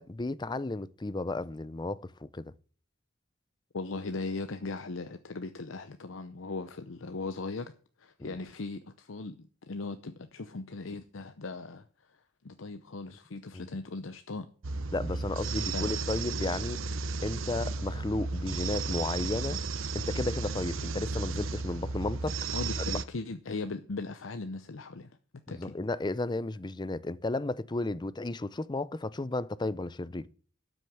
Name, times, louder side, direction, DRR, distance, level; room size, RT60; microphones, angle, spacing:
voice 1, 0.0-2.4 8.2-8.4 13.5-13.7 14.9-16.8 17.2-19.6 19.9-22.4 22.9-23.0 25.5-30.3, left 2 dB, 20° left, 0.5 m, -33 dB
voice 2, 3.7-7.7 8.0-12.2 12.4-14.5 15.7-15.9 22.5-25.2 25.5-25.7, left 3 dB, 75° left, 0.8 m, -38 dB
sound 1, 14.6-23.0, right 3 dB, 90° right, 0.9 m, -34 dB
12.5 x 6.5 x 8.7 m
head